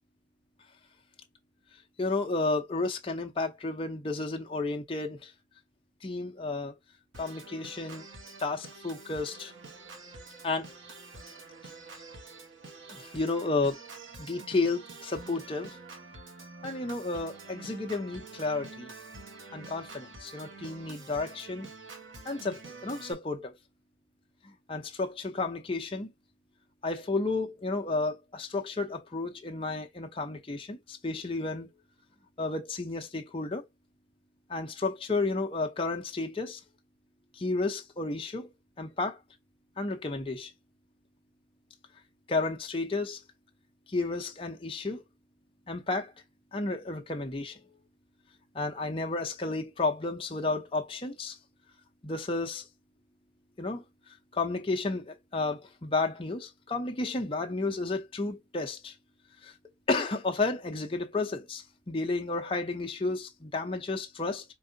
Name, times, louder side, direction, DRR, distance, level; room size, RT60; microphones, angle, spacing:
voice 1, 2.0-5.3 6.0-6.7 7.2-8.0 8.4-9.5 10.4-10.7 12.9-13.8 14.2-15.8 16.6-18.9 19.5-21.7 22.2-23.5 24.4-26.1 26.8-31.7 32.4-33.7 34.5-36.6 37.3-39.2 39.8-40.5 42.3-43.2 43.9-45.0 45.7-46.1 46.5-47.6 48.5-51.4 52.0-52.7 53.6-53.8 54.3-58.9 59.4-59.5 59.9-64.4, left 3 dB, 25° left, 0.6 m, -32 dB
Organ, 7.1-23.1, right 3 dB, 80° right, 1.2 m, -47 dB
4.7 x 2.5 x 2.6 m
head